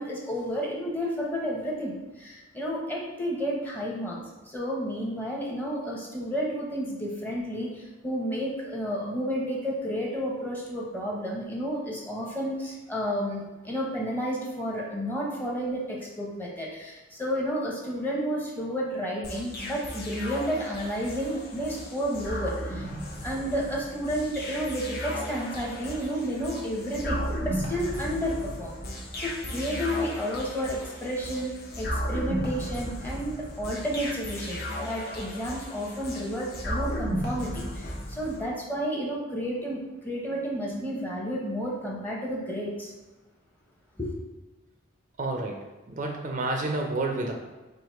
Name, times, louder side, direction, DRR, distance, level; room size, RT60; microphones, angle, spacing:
voice 1, 0.0-4.2 4.4-22.9 23.2-28.7 29.2-42.9 44.0-44.1, equal, 10° left, -3 dB, 0.8 m, -31 dB
sound 1, 19.2-38.4, equal, 50° left, 0.9 m, -35 dB
voice 2, 45.2-47.3, right 2 dB, 40° right, 2 dB, 0.4 m, -30 dB
4.6 x 2.6 x 4.4 m, 1.2 s
head